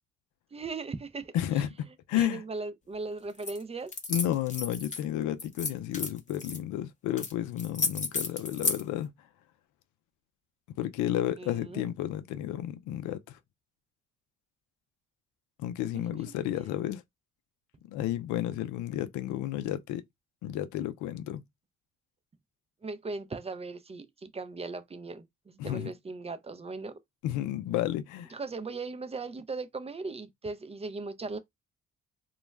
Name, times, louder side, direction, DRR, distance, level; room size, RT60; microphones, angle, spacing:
voice 1, 0.5-1.6 2.2-3.9 11.4-11.9 15.9-16.0 22.8-27.0 28.3-31.4, right 3 dB, 20° right, 0.5 m, -38 dB
voice 2, 1.3-2.4 4.1-9.1 10.8-13.4 15.6-17.0 17.9-20.0 20.4-21.4 25.6-25.9 27.2-28.3, left 12 dB, 75° left, 0.4 m, -32 dB
sound 1, 3.4-3.6 3.9-5.0 5.4-6.6 7.2-7.3 7.6-8.8, left 4 dB, 25° left, 0.6 m, -32 dB
2.3 x 2.0 x 3.2 m
supercardioid pair, 60°, 30 cm